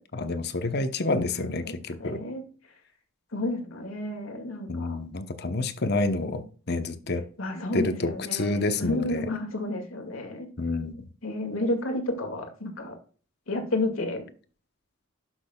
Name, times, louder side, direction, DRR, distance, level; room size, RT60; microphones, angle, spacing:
voice 1, 0.1-2.2 4.7-7.3 7.7-9.3 10.6-11.1, left 2 dB, 55° left, 0.9 m, -28 dB
voice 2, 1.4-1.7 2.0-2.4 3.3-5.0 7.4-10.5 11.2-13.0 13.5-14.2, left 2 dB, 75° left, 2.2 m, -31 dB
11.5 x 6.2 x 2.3 m
head